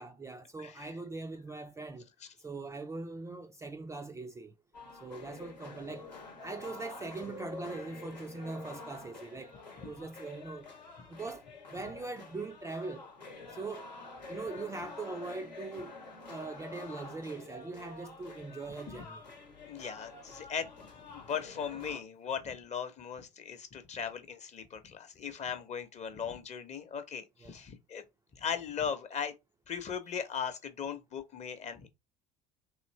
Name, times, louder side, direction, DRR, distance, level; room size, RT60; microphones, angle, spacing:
voice 1, 0.0-2.1 2.4-4.5 5.0-6.1 6.4-9.5 9.8-10.7 11.1-11.4 11.7-13.1 13.5-13.9 14.3-16.0 16.3-19.3 27.4-27.6 30.3-30.4, right 3 dB, 15° right, 0.4 m, -41 dB
sound 1, 4.7-22.0, left 3 dB, 85° left, 0.9 m, -48 dB
voice 2, 19.6-28.0 28.3-29.3 29.7-31.9, left 7 dB, 35° left, 0.8 m, -38 dB
3.2 x 2.6 x 3.1 m
figure-of-eight pair, 60°, 21 cm